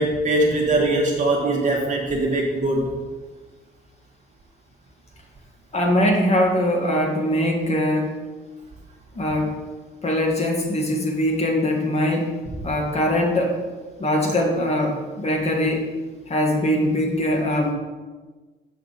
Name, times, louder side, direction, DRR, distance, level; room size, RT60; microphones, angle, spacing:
voice 1, 0.0-2.9, right 2 dB, 40° right, -2 dB, 1.4 m, -21 dB
voice 2, 5.7-8.1 9.1-9.5 10.0-12.3 12.6-13.6 14.0-15.9 16.3-17.7, left 1 dB, 30° left, 0 dB, 1.8 m, -22 dB
7.1 x 5.8 x 4.1 m, 1.3 s
cardioid pair, 90°, 20 cm